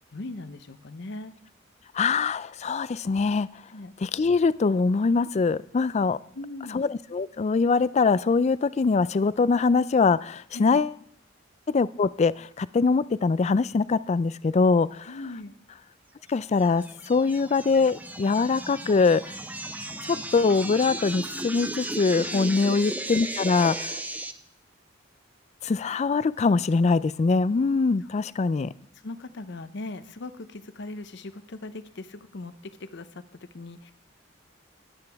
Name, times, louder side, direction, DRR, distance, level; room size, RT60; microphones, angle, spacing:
voice 1, 0.1-1.3 3.7-3.9 6.3-6.8 10.5-10.8 15.1-15.5 22.2-22.6 29.0-33.9, left 2 dB, 65° left, 12 dB, 0.8 m, -39 dB
voice 2, 1.9-3.5 4.0-6.2 6.7-10.9 11.7-15.1 16.3-19.2 20.0-24.0 25.6-28.7, left 4 dB, 35° left, 18 dB, 0.4 m, -23 dB
sound 1, 16.6-24.3, right 1 dB, 10° right, 0.6 m, -35 dB
20.0 x 8.9 x 3.5 m, 0.68 s
head